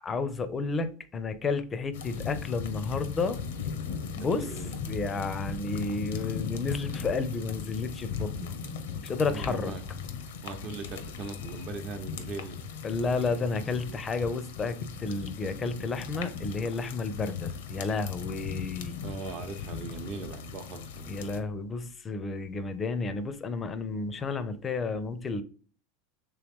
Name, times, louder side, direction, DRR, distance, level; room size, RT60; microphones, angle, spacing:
voice 1, 0.0-3.4 4.2-4.5 4.9-8.5 9.0-9.7 12.8-19.0 21.1-25.4, left 4 dB, 20° left, 0.5 m, -31 dB
sound 1, 1.9-21.4, left 6 dB, 85° left, 0.6 m, -38 dB
voice 2, 4.2-4.8 9.3-9.8 10.4-12.6 19.0-21.1, right 4 dB, 45° right, 0.8 m, -39 dB
3.3 x 3.0 x 3.5 m
supercardioid pair, 125°, 0 cm